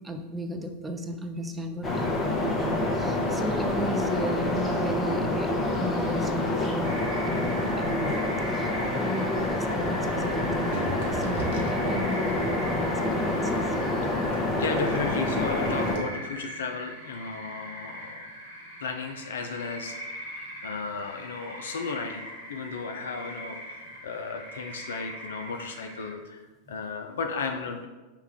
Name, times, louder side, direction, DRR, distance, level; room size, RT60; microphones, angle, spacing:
voice 1, 0.0-5.5 5.8-6.9 7.2-8.2 8.5-8.7 9.0-10.8 11.1-13.7 26.7-26.8, equal, 10° right, 4 dB, 0.5 m, -34 dB
sound 1, 1.8-16.0, left 2 dB, 20° left, 0.8 m, -27 dB
sound 2, 6.8-26.1, equal, 80° right, 1.3 m, -40 dB
sound 3, 10.7-15.6 15.8-16.0, right 2 dB, 60° right, 0.9 m, -39 dB
voice 2, 14.0-18.2 18.8-19.9 20.6-26.4 26.7-27.9, left 4 dB, 70° left, 5 dB, 0.4 m, -34 dB
5.6 x 2.3 x 3.5 m, 1.2 s
figure-of-eight pair, 90°, 0 cm